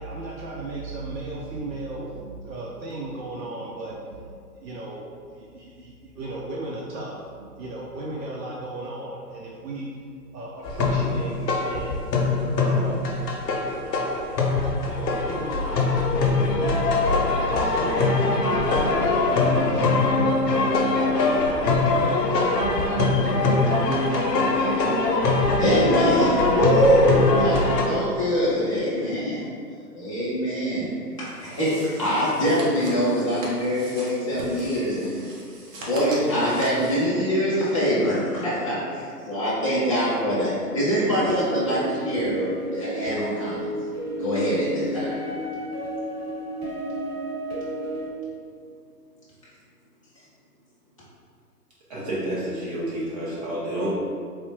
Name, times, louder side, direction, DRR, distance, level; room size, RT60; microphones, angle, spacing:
voice 1, 0.0-4.3 4.6-9.9 10.3-12.1 12.6-13.1 13.9-14.4 14.8-16.0 16.4-18.3 18.8-22.0, right 2 dB, 90° right, -3 dB, 0.6 m, -36 dB
sound 1, 10.6-27.8, left 3 dB, 90° left, 0.7 m, -22 dB
voice 2, 25.6-27.5 27.8-29.4 30.0-30.9 31.2-35.2 35.9-43.7 44.2-45.1, equal, 25° left, -11 dB, 0.3 m, -23 dB
sound 2, 31.2-37.1, right 1 dB, 55° right, 0.8 m, -40 dB
sound 3, 41.3-48.1, right 1 dB, 10° left, 0.8 m, -31 dB
voice 3, 51.9-53.9, right 1 dB, 25° right, -8 dB, 0.6 m, -29 dB
3.4 x 2.0 x 2.7 m, 2.2 s
hypercardioid pair, 140°, 48 cm